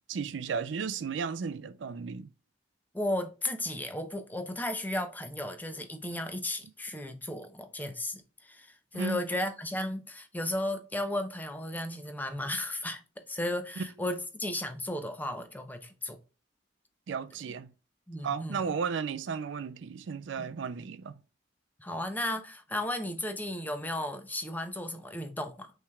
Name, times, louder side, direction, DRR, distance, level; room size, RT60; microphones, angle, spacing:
voice 1, 0.1-2.3 8.9-9.2 13.8-13.9 17.1-17.7 18.2-21.1, right 5 dB, 65° right, 0.4 m, -34 dB
voice 2, 2.9-13.0 13.3-16.2 18.1-18.6 20.4-20.5 21.8-25.7, left 1 dB, 10° left, 0.6 m, -34 dB
5.6 x 3.3 x 2.3 m
head